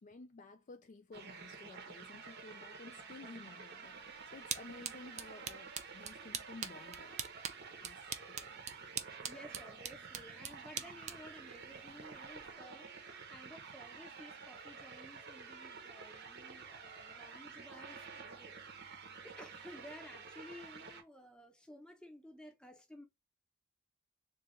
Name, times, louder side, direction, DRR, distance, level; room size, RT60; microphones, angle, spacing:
voice 1, 0.0-7.2 7.8-8.7, left 3 dB, 35° left, 0.3 m, -54 dB
sound 1, 1.1-21.0, right 5 dB, 50° right, 0.8 m, -50 dB
sound 2, 3.8-12.5, right 8 dB, 35° right, 0.4 m, -45 dB
voice 2, 9.2-12.9 13.3-19.0 19.2-23.1, equal, 5° left, 0.7 m, -54 dB
3.8 x 2.3 x 3.1 m
head